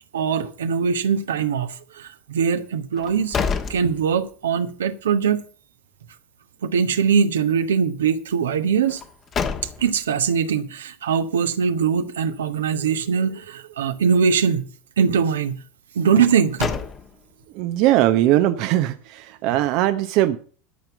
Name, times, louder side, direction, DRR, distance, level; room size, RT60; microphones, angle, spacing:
voice 1, 0.1-3.4 3.7-5.4 6.6-9.0 9.8-14.7 15.0-15.6 15.9-16.7, right 6 dB, 80° right, 1.1 m, -21 dB
sound 1, 2.9-4.6 5.0-5.1 8.9-10.1 16.2-17.5, left 6 dB, 35° left, 1.4 m, -29 dB
voice 2, 17.5-20.4, right 14 dB, 55° right, 0.8 m, -20 dB
12.5 x 5.9 x 7.9 m
hypercardioid pair, 80°, 0 cm